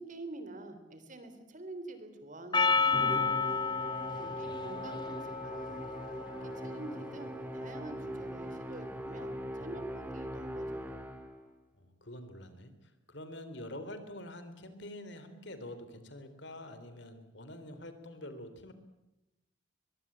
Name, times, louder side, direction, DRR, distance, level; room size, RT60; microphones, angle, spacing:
voice 1, 0.0-3.4 4.2-10.9, right 2 dB, 40° right, 9 dB, 3.6 m, -47 dB
Percussion, 2.5-7.1, left 4 dB, 20° left, 1.2 m, -32 dB
Musical instrument, 2.9-11.5, equal, 10° right, 2.4 m, -41 dB
voice 2, 4.2-4.8 11.7-12.7 13.1-18.7, left 1 dB, 60° left, 10 dB, 3.5 m, -46 dB
23.5 x 23.0 x 8.7 m, 0.94 s
head